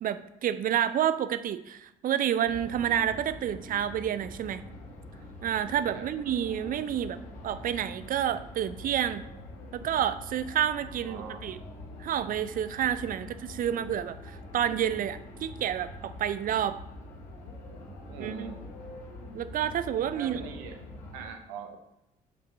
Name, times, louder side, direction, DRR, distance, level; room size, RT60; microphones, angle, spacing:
voice 1, 0.0-4.6 5.4-7.2 7.4-9.2 9.7-11.6 12.0-16.8 18.2-18.6 19.3-20.4, right 10 dB, 40° right, 13 dB, 0.5 m, -29 dB
sound 1, 2.4-21.2, left 1 dB, 70° left, 1.3 m, -45 dB
voice 2, 11.0-11.4 13.2-13.3 18.1-18.6 20.1-20.7 21.1-21.8, right 6 dB, 70° right, 5 dB, 0.9 m, -41 dB
5.5 x 5.5 x 3.9 m, 0.87 s
figure-of-eight pair, 50°, 21 cm